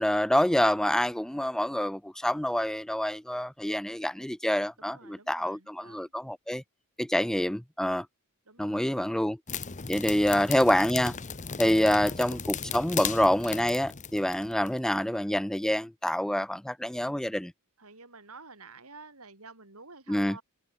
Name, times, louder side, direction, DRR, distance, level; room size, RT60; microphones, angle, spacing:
voice 1, 0.0-6.6 7.0-8.1 8.6-9.4 9.9-11.1 11.6-17.5 20.1-20.4, left 1 dB, ahead, 0.4 m, -27 dB
voice 2, 4.8-6.1 8.5-9.0 10.3-10.4 12.0-12.4 17.8-20.4, right 4 dB, 70° right, 8.0 m, -50 dB
sound 1, 9.5-14.8, left 7 dB, 35° left, 1.0 m, -37 dB
open air
head